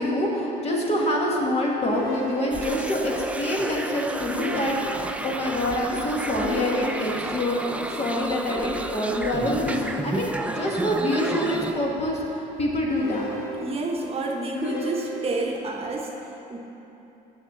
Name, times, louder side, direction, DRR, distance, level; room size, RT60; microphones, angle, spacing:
voice 1, 0.0-7.6 7.9-13.3, left 1 dB, 40° left, -2 dB, 1.6 m, -26 dB
sound 1, 1.8-2.9 4.3-5.3 6.4-7.5 9.5-10.5 11.1-12.0 12.9-13.9 14.5-15.6, left 2 dB, 75° left, 1.1 m, -33 dB
sound 2, 2.5-11.7, right 2 dB, 5° right, 0.4 m, -31 dB
voice 2, 13.6-16.1 16.5-16.6, right 3 dB, 35° right, 0 dB, 1.0 m, -29 dB
6.5 x 6.3 x 7.4 m, 3.0 s
cardioid pair, 110°, 17 cm